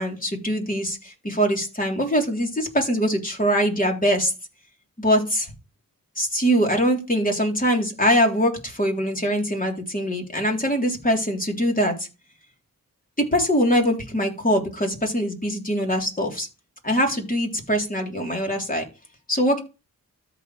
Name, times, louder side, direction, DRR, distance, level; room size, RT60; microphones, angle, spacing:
voice 1, 0.0-4.3 5.0-5.5 6.2-12.1 13.2-16.5 16.8-18.8 19.3-19.6, equal, 25° left, 1 dB, 3.3 m, -23 dB
13.5 x 5.0 x 3.2 m, 0.29 s
cardioid pair, 45°, 36 cm